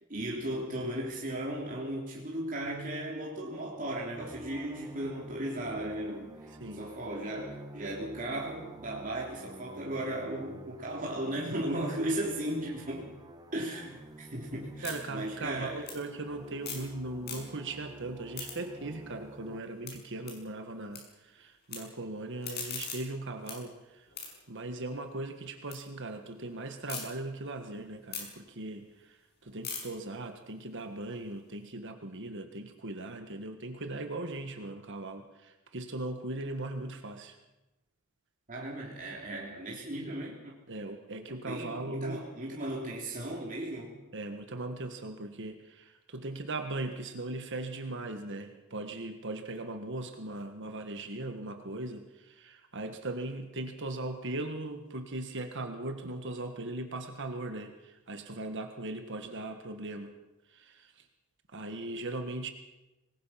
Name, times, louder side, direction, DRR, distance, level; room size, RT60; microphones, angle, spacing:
voice 1, 0.1-13.1 13.5-15.9 38.5-40.4 41.3-43.9, right 1 dB, 40° right, -3 dB, 3.4 m, -36 dB
sound 1, 4.2-19.6, right 1 dB, 20° right, 1.2 m, -50 dB
sound 2, 13.9-16.9 17.2-17.8 18.1-21.0 21.3-21.8 22.2-25.8 26.2-27.0 27.5-31.6, left 6 dB, 50° left, 6.5 m, -44 dB
voice 2, 14.8-24.1 24.5-37.4 40.7-42.2 44.1-60.1 60.5-61.1 61.5-62.5, right 2 dB, 55° right, 6 dB, 1.6 m, -39 dB
25.5 x 20.5 x 5.9 m, 1.0 s
head